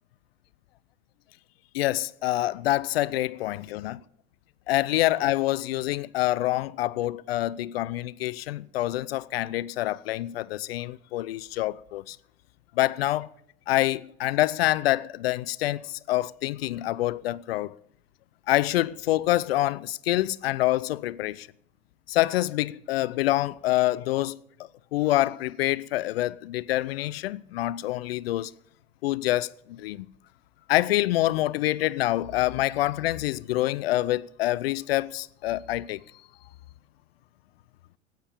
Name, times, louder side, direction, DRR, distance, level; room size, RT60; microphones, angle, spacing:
voice 1, 1.7-4.0 4.7-12.2 12.8-13.3 13.7-17.7 18.5-21.5 22.1-24.4 24.9-28.5 29.0-30.1 30.7-36.0, left 16 dB, 50° left, 0.5 m, -26 dB
15.0 x 9.0 x 8.4 m
figure-of-eight pair, 95°, 39 cm